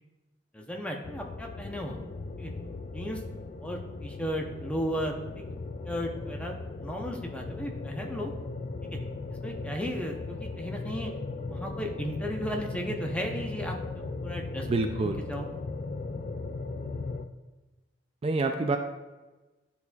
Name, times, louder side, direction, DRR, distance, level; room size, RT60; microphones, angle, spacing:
voice 1, 0.5-2.0 2.4-2.5 2.9-3.2 3.6-5.5 5.8-6.5 6.8-8.3 8.8-9.0 9.3-11.1 11.5-14.7 15.0-15.5, equal, 5° left, 1 dB, 0.7 m, -35 dB
sound 1, 1.0-17.2, left 3 dB, 45° left, 0.4 m, -38 dB
voice 2, 14.7-15.2 18.2-18.8, right 3 dB, 35° right, 5 dB, 0.4 m, -26 dB
11.0 x 4.1 x 2.3 m, 1.2 s
head